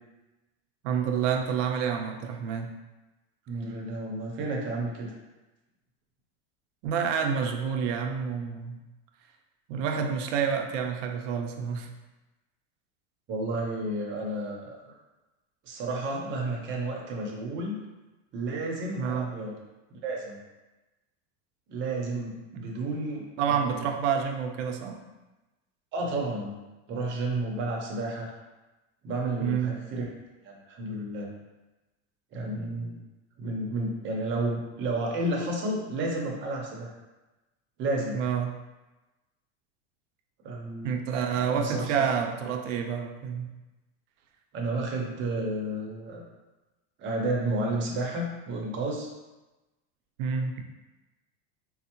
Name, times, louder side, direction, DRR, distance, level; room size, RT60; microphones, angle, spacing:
voice 1, 0.8-2.7 6.8-8.8 9.7-11.9 19.0-19.3 22.5-22.7 23.4-25.0 29.4-29.8 38.1-38.5 40.8-43.5 50.2-50.6, right 7 dB, 75° right, 4 dB, 0.6 m, -28 dB
voice 2, 3.5-5.1 13.3-14.9 15.6-17.8 18.3-19.5 19.9-20.4 21.7-23.9 25.9-26.6 26.9-28.3 29.0-30.1 30.4-31.3 32.3-33.0 33.4-36.9 37.8-38.2 40.4-41.0 41.3-42.0 44.5-46.2 47.0-49.1, right 2 dB, 30° right, -1 dB, 0.7 m, -31 dB
4.3 x 2.0 x 2.8 m, 1.1 s
supercardioid pair, 145°, 37 cm